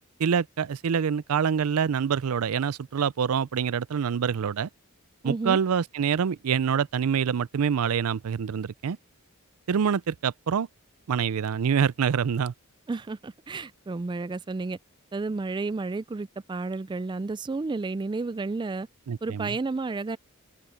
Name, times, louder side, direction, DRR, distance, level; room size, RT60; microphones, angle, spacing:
voice 1, 0.2-4.7 5.2-9.0 9.7-10.7 11.1-12.5 19.1-19.6, right 7 dB, 85° right, 0.4 m, -26 dB
voice 2, 5.2-5.6 12.9-14.8 15.1-18.9 19.2-20.2, right 3 dB, 20° right, 0.3 m, -31 dB
head